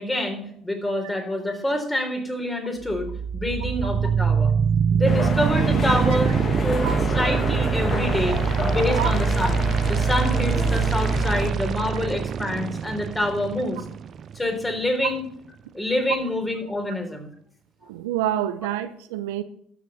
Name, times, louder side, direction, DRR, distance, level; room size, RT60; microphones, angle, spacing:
voice 1, 0.0-4.5 4.9-6.3 6.6-6.9 7.1-8.4 8.6-9.6 9.9-13.8 14.3-15.3 15.7-17.3, left 1 dB, 10° left, 3.8 m, -26 dB
sound 1, 2.8-14.8, right 7 dB, 50° right, 0.6 m, -24 dB
sound 2, 5.1-11.5, left 3 dB, 35° left, 2.2 m, -29 dB
voice 2, 17.9-19.4, right 12 dB, 80° right, 0.8 m, -27 dB
12.5 x 6.8 x 6.8 m
hypercardioid pair, 70°, 0 cm